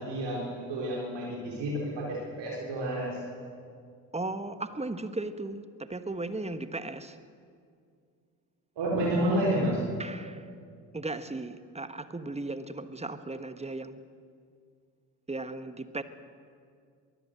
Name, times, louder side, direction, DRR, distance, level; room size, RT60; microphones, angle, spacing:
voice 1, 0.0-3.2 8.8-9.8, right 1 dB, 55° right, -3 dB, 4.2 m, -30 dB
voice 2, 4.1-7.2 10.0-10.5 10.9-14.1 15.3-16.0, right 2 dB, 15° right, 12 dB, 1.4 m, -36 dB
22.5 x 15.0 x 7.9 m, 2.2 s
figure-of-eight pair, 45°, 49 cm